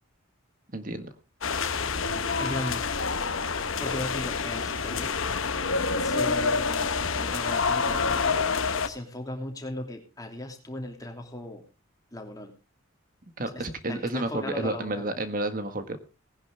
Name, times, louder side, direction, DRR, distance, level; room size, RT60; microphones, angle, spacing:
voice 1, 0.7-1.1 13.4-16.0, right 2 dB, 40° right, 9 dB, 1.6 m, -31 dB
sound 1, 1.4-8.9, left 5 dB, 75° left, 1.2 m, -27 dB
voice 2, 2.4-2.8 3.8-5.1 6.0-11.6 12.1-12.5 13.5-15.1, left 1 dB, 15° left, 3 dB, 2.8 m, -37 dB
18.5 x 10.5 x 3.4 m, 0.30 s
head